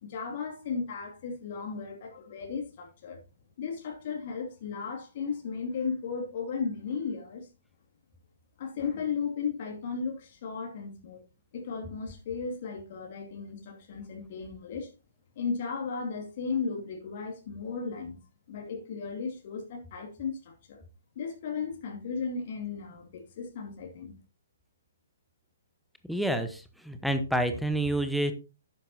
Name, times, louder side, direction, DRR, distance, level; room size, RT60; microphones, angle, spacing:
voice 1, 0.0-3.2 3.6-7.5 8.6-11.2 11.5-14.9 15.4-18.2 18.5-20.8 21.2-24.1, left 5 dB, 45° left, 2.5 m, -35 dB
voice 2, 26.1-28.3, right 1 dB, ahead, 1.0 m, -28 dB
11.5 x 9.2 x 2.8 m
figure-of-eight pair, 125°, 0 cm